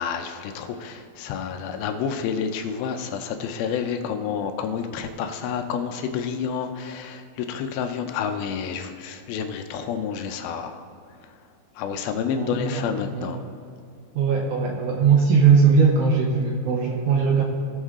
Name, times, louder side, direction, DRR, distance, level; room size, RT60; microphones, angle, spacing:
voice 1, 0.0-10.8 11.8-13.4, left 7 dB, 80° left, 6 dB, 2.5 m, -29 dB
voice 2, 12.4-12.8 13.1-13.3 14.2-17.4, right 5 dB, 70° right, 0 dB, 2.0 m, -19 dB
18.5 x 6.3 x 3.7 m, 2.3 s
omnidirectional pair, 4.4 m